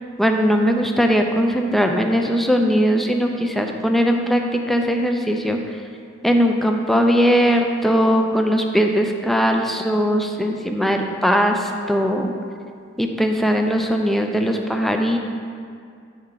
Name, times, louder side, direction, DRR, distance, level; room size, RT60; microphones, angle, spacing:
voice 1, 0.2-5.6 6.2-12.3 13.0-15.2, equal, ahead, 3 dB, 0.4 m, -19 dB
9.1 x 4.4 x 3.8 m, 2.3 s
head